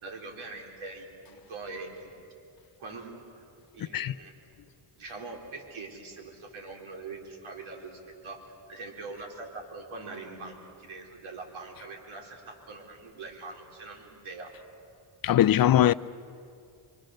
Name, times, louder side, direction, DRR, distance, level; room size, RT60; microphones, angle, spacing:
voice 1, 0.0-2.1 2.8-3.4 3.7-4.3 5.0-8.4 8.7-14.5 15.8-16.0, right 3 dB, 75° right, 4.2 m, -43 dB
voice 2, 15.2-15.9, left 12 dB, 45° left, 0.6 m, -20 dB
25.0 x 24.5 x 6.5 m
cardioid pair, 75°, 49 cm